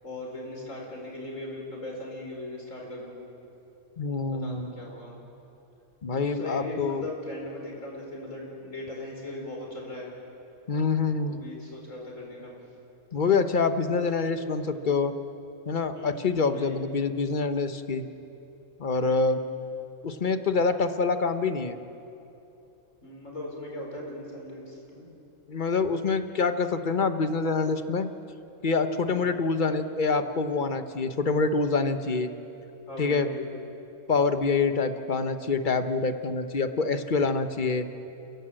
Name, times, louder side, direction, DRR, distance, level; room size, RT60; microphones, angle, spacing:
voice 1, 0.0-3.2 4.3-5.2 6.1-10.1 11.2-12.6 15.9-16.8 19.0-19.4 23.0-25.1 29.1-29.4 32.9-33.4, left 2 dB, 65° left, -1 dB, 5.2 m, -39 dB
voice 2, 4.0-4.7 6.0-7.0 10.7-11.4 13.1-15.1 15.7-18.0 18.8-19.4 20.0-21.8 25.5-28.1 28.6-32.3 33.0-33.3 34.1-37.9, left 4 dB, 40° left, 9 dB, 1.1 m, -26 dB
30.0 x 16.0 x 7.7 m, 2.9 s
omnidirectional pair, 1.5 m